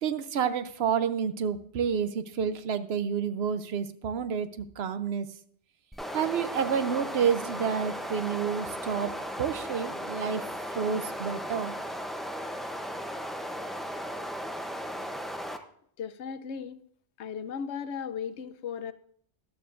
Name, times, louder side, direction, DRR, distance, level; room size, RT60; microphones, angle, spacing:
voice 1, 0.0-5.3 6.1-9.1 9.4-10.4 10.7-11.7, right 7 dB, 70° right, 12 dB, 0.9 m, -29 dB
sound 1, 5.9-15.6, equal, ahead, 0.4 m, -36 dB
voice 2, 16.0-16.8 17.2-18.9, left 7 dB, 80° left, 13 dB, 0.9 m, -36 dB
13.5 x 12.0 x 2.5 m, 0.63 s
omnidirectional pair, 1.1 m